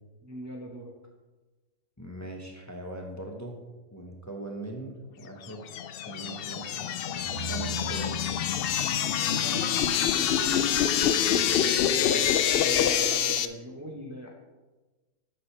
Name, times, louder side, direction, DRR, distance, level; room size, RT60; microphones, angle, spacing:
voice 1, 0.2-0.9 9.1-10.7 11.9-14.3, equal, 15° right, 0 dB, 0.7 m, -40 dB
voice 2, 2.0-5.8 6.1-8.2 11.1-11.5, right 2 dB, 15° left, 1 dB, 1.0 m, -41 dB
sound 1, 5.5-13.5, left 9 dB, 90° left, 0.5 m, -26 dB
sound 2, 7.2-10.2, right 7 dB, 65° right, 4.0 m, -42 dB
11.0 x 8.0 x 3.3 m, 1.2 s
omnidirectional pair, 1.5 m